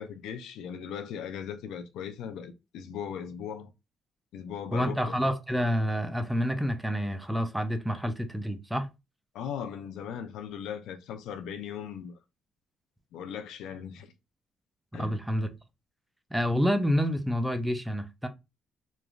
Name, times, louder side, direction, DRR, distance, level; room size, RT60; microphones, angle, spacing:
voice 1, 0.0-3.7 4.3-5.1 9.3-12.1 13.1-14.1 14.9-15.2, left 8 dB, 85° left, 0.4 m, -38 dB
voice 2, 4.7-8.9 14.9-15.5 16.3-18.3, equal, 5° right, 0.5 m, -28 dB
3.1 x 2.3 x 2.4 m
cardioid pair, 90°, 0 cm